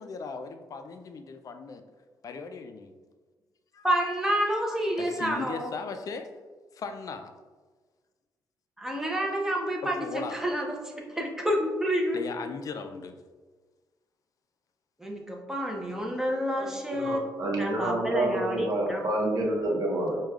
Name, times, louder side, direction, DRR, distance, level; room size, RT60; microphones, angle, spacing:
voice 1, 0.0-1.8 2.2-2.9 3.7-3.9 4.2-4.4 5.0-6.3 6.7-7.3 9.8-10.4 12.1-13.2, left 5 dB, 50° left, 7 dB, 0.4 m, -38 dB
voice 2, 3.8-5.7 8.8-12.2 15.0-17.2 17.6-19.0, equal, 5° right, 0 dB, 0.6 m, -29 dB
voice 3, 16.6-20.2, right 1 dB, 55° right, -1 dB, 0.8 m, -28 dB
4.7 x 2.3 x 2.3 m, 1.4 s
cardioid pair, 90°, 8 cm